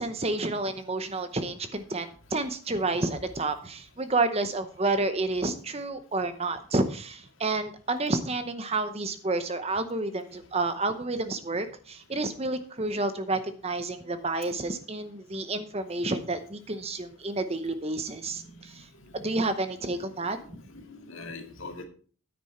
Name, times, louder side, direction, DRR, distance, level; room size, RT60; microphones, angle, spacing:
voice 1, 0.0-18.8 19.1-20.4, right 2 dB, 25° right, 10 dB, 0.7 m, -30 dB
voice 2, 19.0-19.4 20.4-21.8, left 3 dB, 60° left, 3 dB, 2.1 m, -43 dB
9.6 x 9.5 x 4.3 m, 0.43 s
head